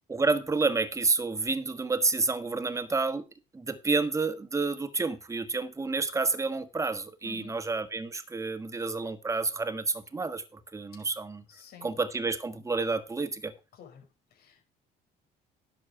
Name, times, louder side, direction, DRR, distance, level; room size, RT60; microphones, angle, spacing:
voice 1, 0.1-3.2 3.5-11.4 11.8-13.5, right 3 dB, 20° right, 1.4 m, -29 dB
voice 2, 7.2-7.6 10.9-11.1 11.5-11.9 13.7-14.6, left 7 dB, 70° left, 5.1 m, -51 dB
11.0 x 7.2 x 4.9 m
cardioid pair, 110°, 17 cm